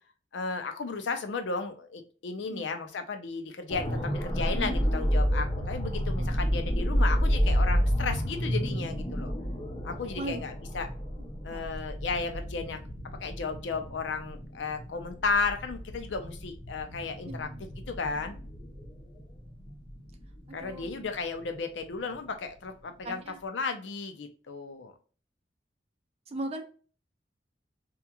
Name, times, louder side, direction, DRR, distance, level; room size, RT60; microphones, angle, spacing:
voice 1, 0.3-9.3 9.8-10.9 11.4-12.8 13.2-17.5 17.9-18.4 20.5-24.9, left 4 dB, 80° left, 7 dB, 0.5 m, -34 dB
sound 1, 3.7-21.6 21.9-22.1, equal, 25° left, 0.6 m, -30 dB
voice 2, 11.2-11.6 17.2-17.6 20.5-20.9 23.0-23.4 26.3-26.6, right 2 dB, 35° right, 6 dB, 0.4 m, -38 dB
2.9 x 2.3 x 2.3 m, 0.39 s
head